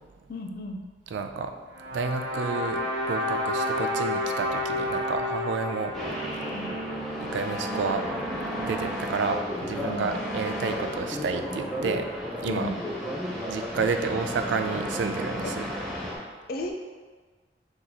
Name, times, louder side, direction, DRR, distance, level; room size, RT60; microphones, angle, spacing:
voice 1, 0.3-0.8 6.5-6.7 9.8-10.1 12.5-12.8 15.4-15.5 16.5-16.7, left 2 dB, 55° left, 3 dB, 0.5 m, -34 dB
voice 2, 1.1-1.5 1.9-6.0 7.2-8.1 8.7-12.1 12.4-12.7 13.5-15.7, right 4 dB, 85° right, 7 dB, 0.3 m, -30 dB
sound 1, 1.7-8.0, left 1 dB, 70° right, 0.9 m, -31 dB
sound 2, 5.9-16.2, equal, ahead, 0.7 m, -33 dB
3.7 x 3.0 x 4.0 m, 1.4 s
head